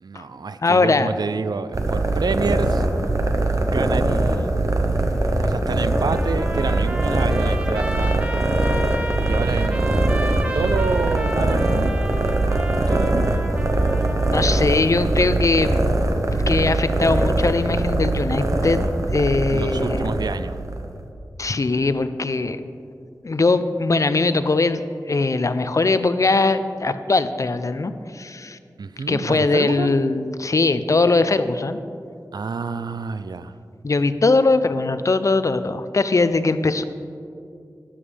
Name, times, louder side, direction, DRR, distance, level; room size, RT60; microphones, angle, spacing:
voice 1, 0.0-2.9 3.6-4.6 5.4-8.2 9.2-12.4 12.7-13.3 19.5-20.6 28.8-29.9 32.3-33.5, right 4 dB, 75° right, 13 dB, 0.4 m, -28 dB
voice 2, 0.6-1.1 14.3-15.8 16.3-20.1 21.4-22.6 23.2-24.8 25.1-28.6 29.1-31.8 33.8-36.8, left 3 dB, 50° left, 12 dB, 0.5 m, -20 dB
sound 1, 1.7-21.0, right 2 dB, 50° right, 0.9 m, -22 dB
Trumpet, 5.9-14.7, right 1 dB, 20° right, 0.9 m, -33 dB
12.5 x 10.0 x 3.4 m, 2.4 s
wide cardioid pair, 65°, 7 cm